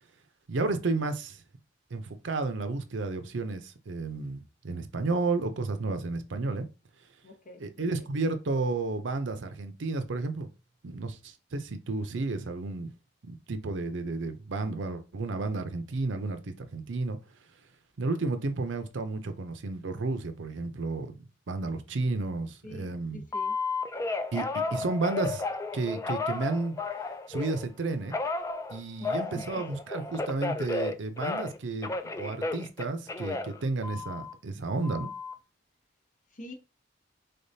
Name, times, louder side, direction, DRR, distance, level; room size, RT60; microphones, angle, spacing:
voice 1, 0.5-1.4 1.9-6.7 7.6-10.5 10.8-12.9 13.2-17.2 18.0-21.2 21.5-23.2 24.3-24.5 24.7-25.4 25.7-26.7 27.3-28.1 28.7-35.1, right 3 dB, 70° right, 0.6 m, -32 dB
voice 2, 7.2-7.9 22.6-23.6 29.0-29.6 36.3-36.5, left 2 dB, 45° left, 0.9 m, -46 dB
Telephone, 23.3-27.6 28.1-31.6 31.8-34.3 34.8-35.3, left 3 dB, 15° left, 0.3 m, -33 dB
3.9 x 3.5 x 2.7 m
head